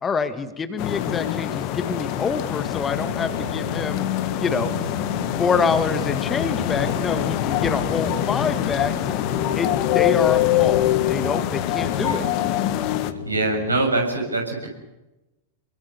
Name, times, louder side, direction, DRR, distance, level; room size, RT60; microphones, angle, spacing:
voice 1, 0.0-4.0 4.4-4.7 5.4-9.2 9.5-12.2, left 5 dB, 20° left, 10 dB, 1.9 m, -26 dB
sound 1, 0.8-13.1, left 14 dB, 45° left, 1.7 m, -24 dB
sound 2, 2.9-13.8, left 2 dB, 75° left, 6.6 m, -34 dB
voice 2, 13.3-14.7, right 2 dB, 80° right, 2 dB, 7.1 m, -23 dB
28.0 x 22.5 x 6.9 m, 0.99 s
figure-of-eight pair, 90°, 0 cm